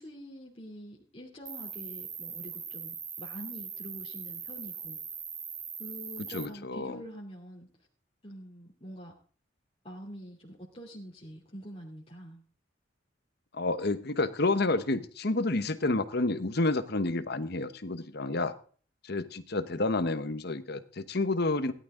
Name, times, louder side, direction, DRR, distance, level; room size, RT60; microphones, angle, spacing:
voice 1, 0.0-5.0 5.8-7.7 8.2-9.1 9.8-12.4, equal, 30° left, -2 dB, 2.8 m, -45 dB
Cricket, 1.5-6.5, right 6 dB, 20° right, 1.1 m, -41 dB
voice 2, 6.3-7.0 13.5-18.5 19.0-21.7, left 2 dB, 55° left, 12 dB, 1.1 m, -29 dB
17.5 x 11.5 x 3.8 m, 0.41 s
head